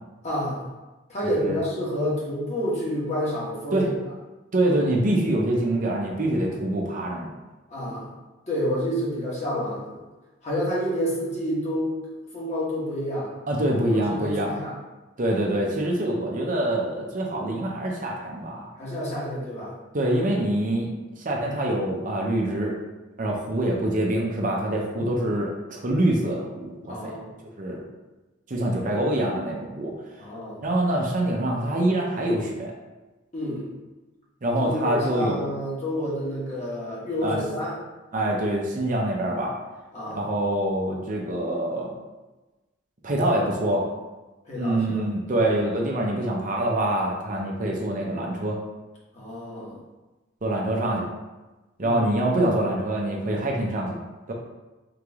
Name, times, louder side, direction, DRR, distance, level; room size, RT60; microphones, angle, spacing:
voice 1, 0.2-0.6 1.1-3.9 7.7-8.1 8.5-10.0 10.4-12.0 12.3-13.3 13.9-14.7 18.8-19.7 24.9-25.1 26.9-27.3 30.2-30.6 33.3-33.7 34.6-37.7 39.9-40.3 44.4-45.0 49.1-49.8 51.8-52.0, equal, 35° left, -7 dB, 1.4 m, -29 dB
voice 2, 4.5-7.3 13.5-14.5 15.2-18.7 19.9-20.9 21.2-22.7 23.2-27.2 27.6-27.8 28.5-29.9 30.6-32.7 34.4-35.4 37.2-37.4 38.1-39.5 40.1-41.9 43.0-43.9 44.6-48.6 50.4-51.1 51.8-54.0 54.3-54.4, right 1 dB, 40° right, -1 dB, 0.6 m, -25 dB
3.8 x 3.3 x 3.5 m, 1.1 s
head